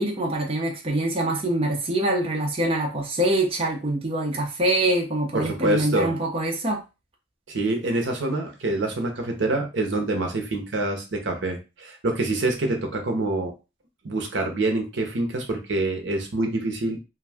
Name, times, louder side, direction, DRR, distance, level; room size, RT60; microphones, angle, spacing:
voice 1, 0.0-6.8, right 1 dB, 30° right, -1 dB, 0.6 m, -24 dB
voice 2, 5.3-6.1 7.5-13.5 14.0-17.0, right 2 dB, 70° right, 3 dB, 0.7 m, -26 dB
2.5 x 2.3 x 3.4 m, 0.29 s
head